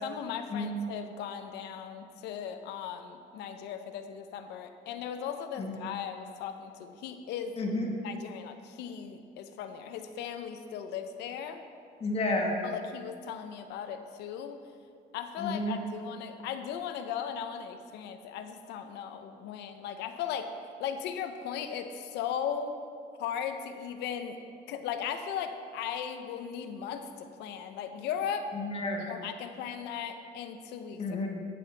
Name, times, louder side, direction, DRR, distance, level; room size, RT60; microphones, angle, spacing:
voice 1, 0.0-7.6 8.0-11.6 12.6-14.6 15.1-20.5 20.8-22.7 23.2-24.4 24.7-28.5 29.1-31.0, left 8 dB, 85° left, 8 dB, 0.8 m, -37 dB
voice 2, 7.6-7.9 12.0-12.5 15.4-15.7 28.5-29.0 31.0-31.3, left 2 dB, 35° left, 0 dB, 1.6 m, -31 dB
15.0 x 7.8 x 3.4 m, 2.3 s
cardioid pair, 110°, 17 cm